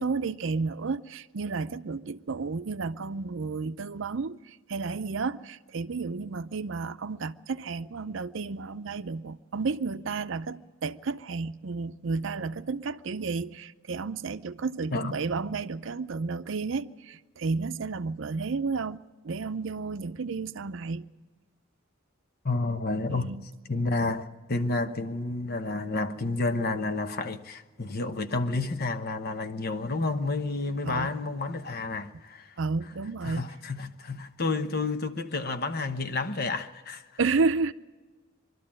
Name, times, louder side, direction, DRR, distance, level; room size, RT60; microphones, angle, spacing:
voice 1, 0.0-21.0 23.1-23.5 24.0-24.1 30.8-31.1 32.6-33.4 37.2-37.7, right 4 dB, 65° right, 0.6 m, -32 dB
voice 2, 22.4-23.3 23.7-32.5 33.2-37.0, left 3 dB, 50° left, 1.0 m, -30 dB
23.5 x 12.5 x 8.8 m
head